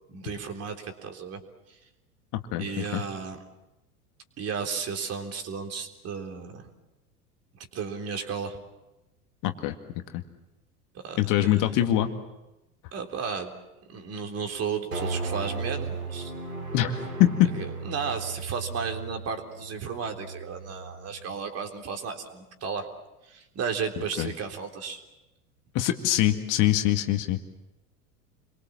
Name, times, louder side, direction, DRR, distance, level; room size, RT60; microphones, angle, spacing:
voice 1, 0.1-1.4 2.6-3.4 4.4-6.7 7.6-8.6 11.0-11.5 12.9-13.5 13.9-16.3 17.5-22.9 23.3-25.0, right 6 dB, 35° right, 5 dB, 3.7 m, -34 dB
voice 2, 2.3-2.6 2.9-3.0 9.4-9.7 10.1-10.2 11.2-12.1 16.7-16.9 17.2-17.5 24.2-24.3 25.7-27.4, left 13 dB, 45° left, 6 dB, 2.0 m, -23 dB
sound 1, 14.9-21.4, right 4 dB, 80° right, 5.0 m, -36 dB
29.0 x 23.5 x 7.4 m, 0.98 s
figure-of-eight pair, 85°, 45 cm